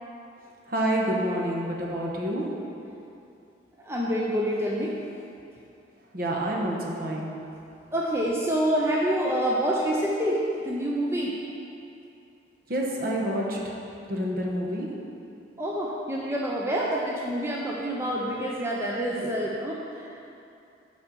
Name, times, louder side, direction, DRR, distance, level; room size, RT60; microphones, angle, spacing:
voice 1, 0.7-2.4 6.1-7.3 12.7-13.6 14.1-14.9, right 1 dB, 55° right, -2 dB, 1.0 m, -28 dB
voice 2, 3.8-5.0 7.9-11.3 15.6-20.1, equal, 15° right, -4 dB, 0.5 m, -27 dB
7.7 x 4.3 x 6.1 m, 2.7 s
head